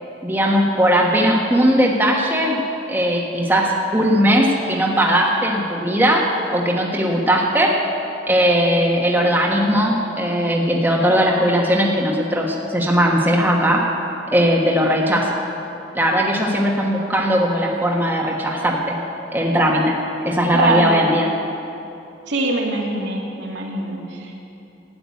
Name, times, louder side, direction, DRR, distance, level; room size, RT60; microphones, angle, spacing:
voice 1, 0.2-2.6 2.9-6.2 6.5-7.7 8.3-13.8 14.3-15.4 15.9-19.0 19.3-19.9 20.2-21.3, equal, 10° right, -2 dB, 1.3 m, -18 dB
voice 2, 20.5-20.9 22.3-24.3, right 2 dB, 75° right, -1 dB, 2.3 m, -23 dB
12.5 x 9.0 x 9.5 m, 2.8 s
head